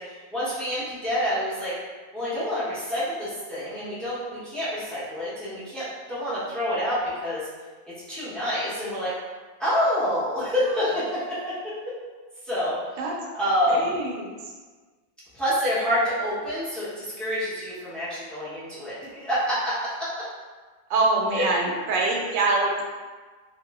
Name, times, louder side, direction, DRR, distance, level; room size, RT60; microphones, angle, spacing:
voice 1, 0.0-1.7 2.1-7.5 8.1-9.1 9.6-12.0 12.4-12.8 13.3-13.9 15.3-20.1 21.3-21.4, equal, ahead, -12 dB, 0.4 m, -27 dB
voice 2, 13.7-14.3 20.9-22.8, right 3 dB, 80° right, 0 dB, 1.2 m, -24 dB
2.9 x 2.0 x 3.4 m, 1.4 s
omnidirectional pair, 1.9 m